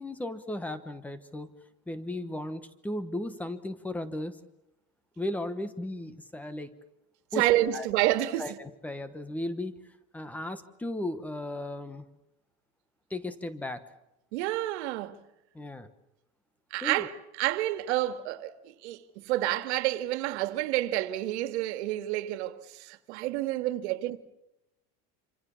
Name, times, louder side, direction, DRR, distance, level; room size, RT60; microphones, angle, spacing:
voice 1, 0.0-1.5 1.9-4.4 5.2-6.8 7.3-7.5 7.7-7.9 8.4-9.8 10.1-12.1 13.1-13.8 15.5-15.9 16.8-17.1, left 1 dB, 5° left, 1.1 m, -35 dB
voice 2, 7.4-8.6 14.3-15.2 16.7-17.1 17.4-24.2, right 15 dB, 75° right, 2.0 m, -29 dB
27.0 x 26.5 x 7.1 m
cardioid pair, 180°, 34 cm